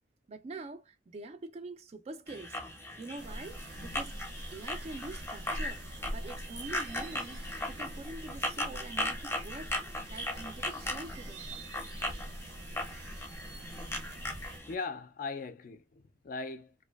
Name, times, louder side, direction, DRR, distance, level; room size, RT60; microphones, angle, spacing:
voice 1, 0.3-2.6 3.0-4.2 4.5-11.5, right 2 dB, 35° right, 0.3 m, -45 dB
sound 1, 2.3-14.7, left 1 dB, 15° left, 0.7 m, -38 dB
sound 2, 3.2-14.6, right 1 dB, 80° right, 0.6 m, -44 dB
voice 2, 14.7-16.7, left 4 dB, 50° left, 0.4 m, -39 dB
2.5 x 2.2 x 2.2 m
head